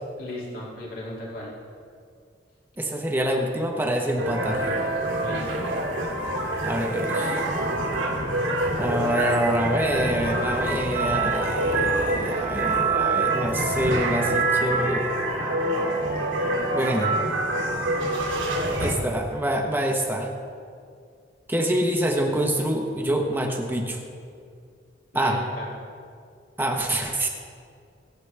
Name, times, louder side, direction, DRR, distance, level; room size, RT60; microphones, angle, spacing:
voice 1, 0.2-1.5 5.2-5.7 25.1-25.7, left 1 dB, 50° left, -5 dB, 2.6 m, -36 dB
voice 2, 2.8-4.6 6.6-7.4 8.8-15.2 16.7-17.1 18.8-20.3 21.5-24.0 25.1-25.4 26.6-27.3, right 1 dB, 10° right, 1 dB, 1.1 m, -26 dB
sound 1, 4.2-18.9, right 2 dB, 90° right, 2.8 m, -26 dB
23.5 x 8.0 x 3.4 m, 2.2 s
head